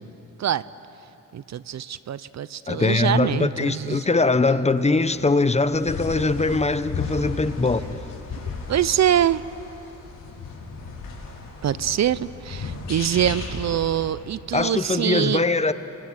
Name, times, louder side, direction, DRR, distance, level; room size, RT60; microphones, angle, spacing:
voice 1, 1.3-4.0 8.7-9.4 11.6-15.5, right 10 dB, 50° right, 0.6 m, -24 dB
voice 2, 2.7-8.0 14.5-15.7, left 3 dB, 20° left, 0.9 m, -22 dB
sound 1, 4.7-14.1, left 3 dB, 70° left, 5.4 m, -35 dB
30.0 x 23.0 x 8.0 m
cardioid pair, 85°, 34 cm